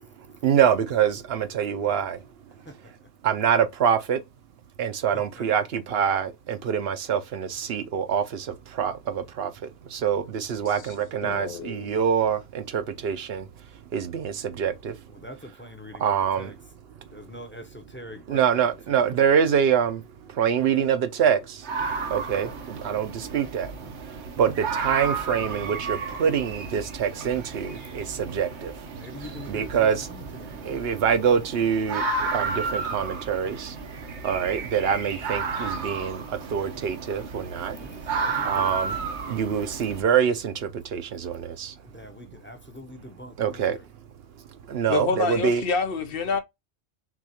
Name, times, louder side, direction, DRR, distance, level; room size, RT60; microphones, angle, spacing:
voice 1, 0.4-2.2 3.2-4.2 4.8-8.5 8.8-9.5 9.9-13.4 13.9-14.9 16.0-16.5 18.3-20.0 20.4-21.4 22.1-22.5 22.8-23.7 24.4-28.7 29.5-30.1 30.7-32.0 32.3-33.7 34.2-36.2 36.5-37.8 38.4-38.9 39.3-40.5 40.9-41.7 43.4-43.8 44.7-45.6, right 8 dB, 65° right, 0.8 m, -25 dB
voice 2, 2.6-3.1 5.1-5.4 10.8-10.9 15.1-16.6 17.1-19.1 28.3-28.4 29.0-30.7 37.7-38.7 41.8-43.9, left 1 dB, 10° left, 0.7 m, -44 dB
voice 3, 11.2-11.9 44.9-46.4, left 4 dB, 65° left, 0.8 m, -27 dB
sound 1, 21.6-40.0, right 4 dB, 85° right, 1.2 m, -33 dB
6.1 x 2.4 x 2.8 m
omnidirectional pair, 1.1 m